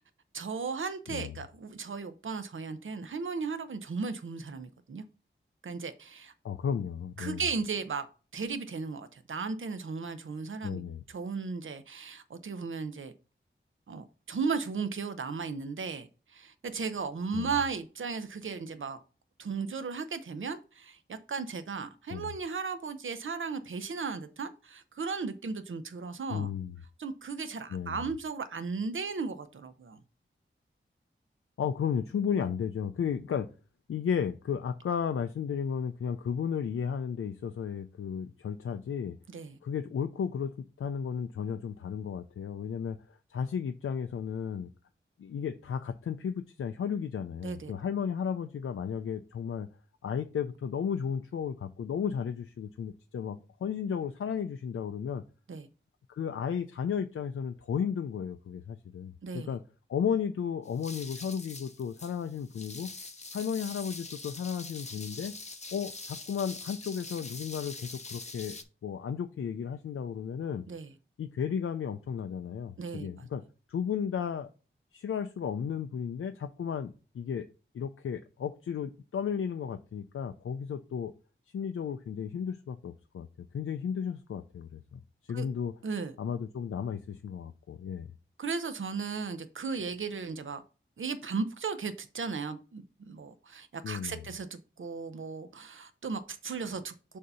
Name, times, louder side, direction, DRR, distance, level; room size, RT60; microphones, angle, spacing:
voice 1, 0.3-5.0 5.6-6.3 7.2-8.1 8.3-10.8 11.1-13.1 13.9-19.0 19.4-26.5 27.0-30.0 39.3-39.6 47.4-47.7 55.5-55.7 59.2-59.5 70.7-70.9 72.8-73.3 85.3-85.5 85.8-86.1 88.4-90.6 91.0-97.2, right 5 dB, 70° right, 0.7 m, -36 dB
voice 2, 6.4-7.4 10.6-11.0 17.3-17.5 22.1-22.3 26.3-26.7 27.7-28.1 31.6-33.5 33.9-39.2 39.6-44.7 45.2-49.7 50.0-55.2 56.1-59.6 59.9-62.9 63.3-65.4 65.7-70.7 71.2-73.4 73.7-74.5 74.9-77.5 77.7-81.1 81.5-83.3 83.5-85.7 86.2-88.1 93.8-94.2, left 7 dB, 90° left, 0.4 m, -34 dB
sound 1, 60.6-68.6, left 3 dB, 35° left, 0.7 m, -44 dB
6.5 x 2.8 x 5.4 m
wide cardioid pair, 65°, 21 cm